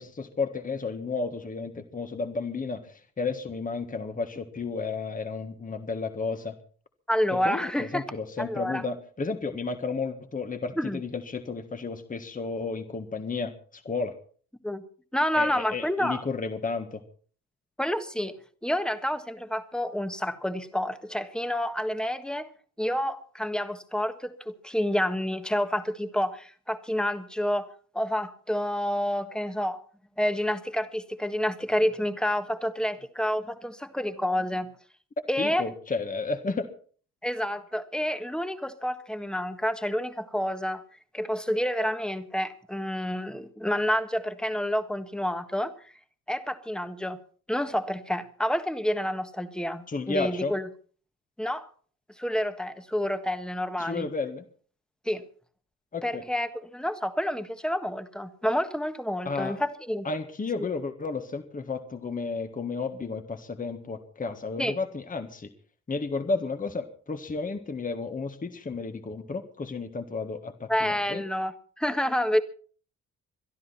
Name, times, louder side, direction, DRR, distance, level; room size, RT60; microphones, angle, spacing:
voice 1, 0.0-6.6 7.3-14.1 15.3-17.0 35.4-36.7 49.9-50.5 53.8-54.4 55.9-56.2 59.3-59.6 60.0-65.5 65.9-71.2, left 4 dB, 25° left, 8 dB, 1.6 m, -32 dB
voice 2, 7.1-8.0 8.4-8.8 10.8-11.0 14.6-14.8 15.1-16.2 17.8-18.4 18.6-22.5 22.8-27.7 27.9-29.8 30.2-34.7 35.3-35.6 37.2-40.8 41.1-45.7 46.3-47.2 47.5-50.7 51.4-51.7 52.2-54.1 55.0-55.2 56.0-60.1 64.6-64.8 70.7-72.4, equal, 5° left, 9 dB, 1.5 m, -29 dB
23.0 x 12.5 x 4.3 m, 0.44 s
cardioid pair, 90°, 30 cm